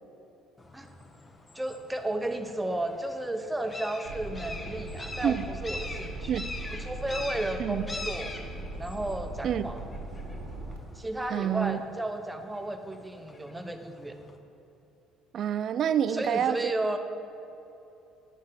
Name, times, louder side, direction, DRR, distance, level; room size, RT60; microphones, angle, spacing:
sound 1, 0.6-14.4, left 2 dB, 25° left, 0.7 m, -44 dB
voice 1, 1.5-6.3 6.7-8.3 8.8-9.8 10.9-14.2 16.1-17.0, right 1 dB, 10° right, 6 dB, 0.8 m, -33 dB
sound 2, 4.1-10.8, right 2 dB, 80° right, 1.2 m, -39 dB
voice 2, 11.3-11.8 15.3-16.6, right 9 dB, 55° right, 14 dB, 0.3 m, -27 dB
9.8 x 6.4 x 3.8 m, 2.9 s
supercardioid pair, 80°, 0 cm